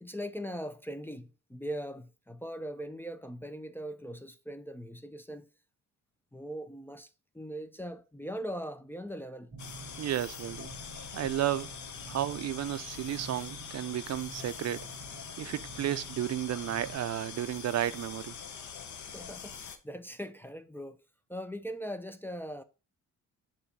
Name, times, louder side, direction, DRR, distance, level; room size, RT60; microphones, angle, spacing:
voice 1, 0.0-5.5 6.3-9.5 19.1-21.0 21.3-22.6, equal, 5° left, 0.4 m, -40 dB
sound 1, 9.5-16.9, right 4 dB, 25° right, 1.6 m, -50 dB
sound 2, 9.6-19.8, left 7 dB, 65° left, 0.9 m, -44 dB
voice 2, 10.0-10.7 11.1-11.7 12.1-14.9 15.4-18.4, right 12 dB, 55° right, 0.4 m, -33 dB
6.9 x 3.0 x 5.5 m
cardioid pair, 115°, 32 cm